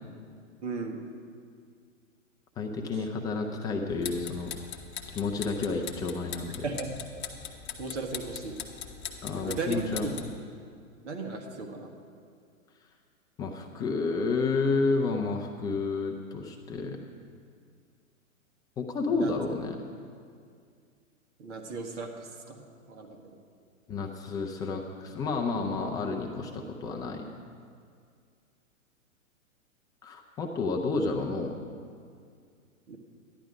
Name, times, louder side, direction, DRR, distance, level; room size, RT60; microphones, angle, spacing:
voice 1, 0.6-1.0 6.6-6.9 7.8-8.6 9.3-10.1 11.0-11.9 19.1-19.3 21.4-22.1 22.5-22.6 22.9-23.2 32.9-33.0, right 3 dB, 55° right, 2 dB, 1.7 m, -35 dB
voice 2, 2.6-4.5 5.1-6.7 9.2-10.3 13.4-17.0 18.8-19.8 23.9-27.2 30.0-31.6, left 3 dB, 10° left, 1 dB, 0.4 m, -30 dB
sound 1, 3.9-10.4, left 8 dB, 30° left, 1.2 m, -41 dB
13.5 x 11.0 x 5.1 m, 2.2 s
hypercardioid pair, 120°, 41 cm